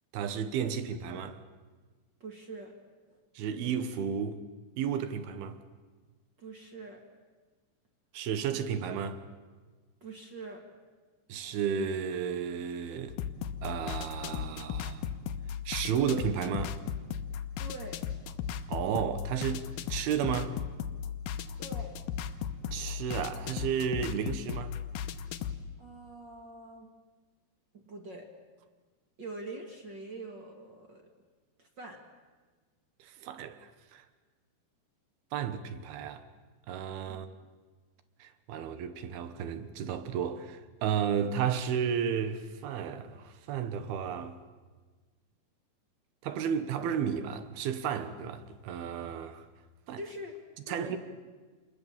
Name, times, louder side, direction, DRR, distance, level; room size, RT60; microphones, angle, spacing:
voice 1, 0.1-1.4 3.4-4.4 4.8-5.6 8.1-9.2 11.3-13.2 13.6-15.0 15.7-16.8 18.7-19.6 19.9-20.6 22.7-24.7 33.0-34.1 35.3-36.2 36.7-37.3 38.2-44.4 46.2-49.5 49.9-50.0 50.7-51.0, right 8 dB, 70° right, 2.8 m, -33 dB
voice 2, 2.2-2.7 3.1-3.2 6.4-7.0 10.0-10.6 17.6-18.0 21.6-22.0 25.8-26.9 27.7-28.3 29.2-31.0 31.6-32.0 37.1-37.3 50.0-50.4 50.7-51.0, right 2 dB, 40° right, 1.6 m, -44 dB
sound 1, 13.1-25.6, left 8 dB, 80° left, 2.0 m, -37 dB
28.0 x 21.0 x 7.3 m
omnidirectional pair, 5.1 m